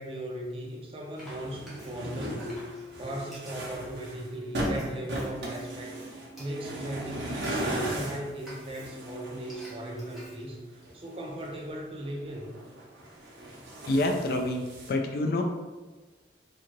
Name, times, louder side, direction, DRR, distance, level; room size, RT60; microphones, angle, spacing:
voice 1, 0.0-6.0 6.4-12.6, right 1 dB, 30° right, 0 dB, 0.4 m, -37 dB
Frying (food), 0.7-11.6, equal, ahead, 0.7 m, -52 dB
sound 1, 1.2-10.2 10.9-11.8 12.1-14.9, right 1 dB, 85° right, 0.7 m, -37 dB
sound 2, 1.7-11.3, left 1 dB, 30° left, 0.8 m, -48 dB
voice 2, 13.9-15.4, left 1 dB, 55° left, 4 dB, 0.3 m, -27 dB
2.6 x 2.4 x 2.9 m, 1.3 s
head